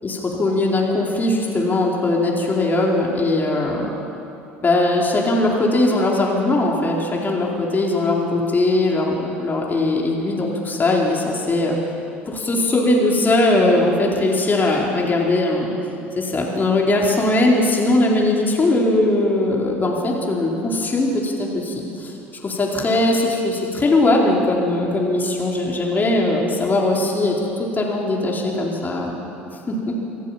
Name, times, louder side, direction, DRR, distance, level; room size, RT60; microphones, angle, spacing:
voice 1, 0.0-3.9 4.6-11.8 12.3-15.7 16.2-22.1 22.4-29.2 29.7-30.0, left 2 dB, 25° left, -2 dB, 4.4 m, -20 dB
26.5 x 15.0 x 7.5 m, 2.8 s
figure-of-eight pair, 65°, 7 cm